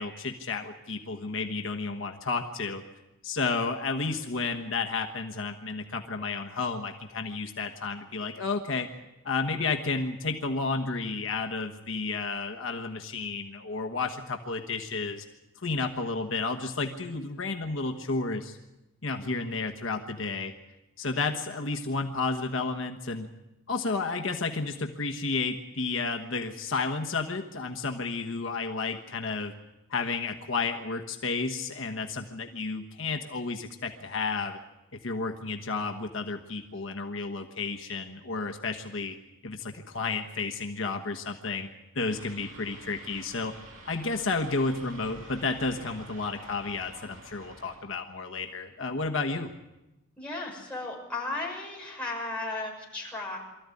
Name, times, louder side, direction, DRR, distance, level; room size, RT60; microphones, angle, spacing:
voice 1, 0.0-2.8 3.2-8.9 9.2-15.2 15.6-18.6 19.0-20.5 21.0-23.3 23.7-29.5 29.9-34.6 34.9-39.1 39.4-41.7 41.9-43.5 43.9-49.5, left 4 dB, 60° left, 3 dB, 1.3 m, -32 dB
sound 1, 42.1-47.8, right 2 dB, 75° right, 6.8 m, -49 dB
voice 2, 50.2-53.4, left 2 dB, 5° left, -3 dB, 6.1 m, -35 dB
24.0 x 14.0 x 9.9 m, 0.96 s
head